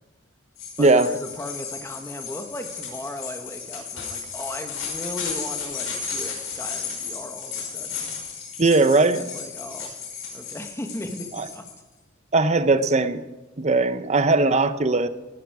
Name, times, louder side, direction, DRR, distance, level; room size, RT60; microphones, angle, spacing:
sound 1, 0.6-11.7, left 6 dB, 75° left, 5.6 m, -34 dB
voice 1, 0.8-8.3 9.0-9.9 10.3-11.6, left 1 dB, 15° left, 5 dB, 1.3 m, -37 dB
voice 2, 8.6-9.2 11.4-11.5 12.3-13.2 13.6-15.1, right 3 dB, 35° right, 12 dB, 0.7 m, -19 dB
18.5 x 11.0 x 4.8 m, 1.2 s
head